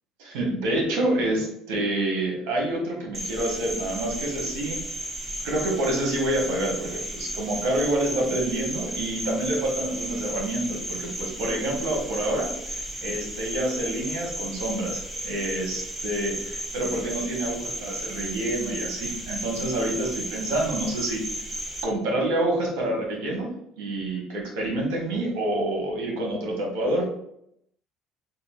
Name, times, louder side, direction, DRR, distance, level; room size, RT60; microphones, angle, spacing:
voice 1, 0.2-4.8 5.4-12.5 13.0-21.3 21.8-27.1, right 1 dB, 80° right, -1 dB, 1.3 m, -27 dB
Cricket, 3.1-21.8, equal, 15° right, 0.9 m, -34 dB
3.9 x 2.4 x 3.6 m, 0.74 s
supercardioid pair, 95°, 0 cm